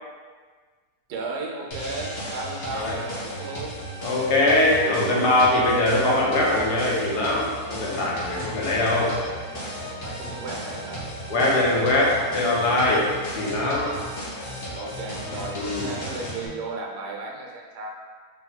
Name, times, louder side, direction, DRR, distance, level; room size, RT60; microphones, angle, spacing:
voice 1, 1.1-3.8 9.8-11.1 14.7-17.9, right 3 dB, 90° right, -1 dB, 1.3 m, -35 dB
sound 1, 1.7-16.5, equal, 45° left, 1.0 m, -35 dB
voice 2, 4.0-9.1 11.3-13.0 13.4-13.9 15.5-15.9, left 1 dB, 85° left, -4 dB, 1.4 m, -22 dB
3.4 x 2.8 x 4.0 m, 1.5 s
omnidirectional pair, 1.7 m